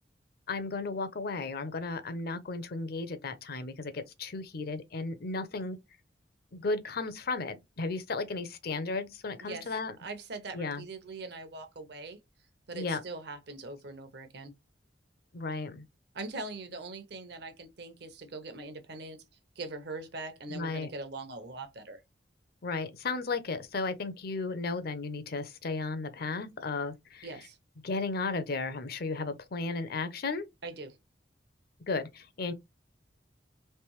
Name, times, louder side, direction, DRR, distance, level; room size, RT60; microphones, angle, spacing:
voice 1, 0.5-5.8 6.5-9.9 10.5-10.8 12.7-13.0 15.3-15.8 20.5-20.9 22.6-27.3 27.8-30.4 31.9-32.5, left 3 dB, 60° left, 0.6 m, -34 dB
voice 2, 9.4-9.7 10.0-12.2 12.7-14.5 16.1-19.2 19.6-22.0 27.2-27.6 30.6-31.0, right 3 dB, 65° right, 0.9 m, -42 dB
3.3 x 3.0 x 3.1 m
head